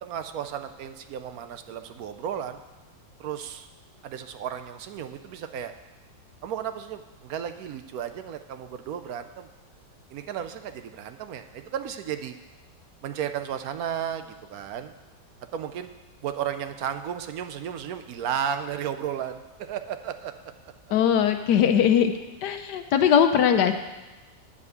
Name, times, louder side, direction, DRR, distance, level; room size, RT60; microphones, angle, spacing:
voice 1, 0.0-2.6 3.2-3.7 4.0-5.7 6.4-9.5 10.1-12.4 13.0-14.9 15.5-15.9 16.2-20.3, right 9 dB, 70° right, 9 dB, 0.9 m, -34 dB
voice 2, 20.9-22.1 22.4-23.7, left 8 dB, 75° left, 8 dB, 1.3 m, -20 dB
9.7 x 5.1 x 8.0 m, 1.1 s
omnidirectional pair, 1.9 m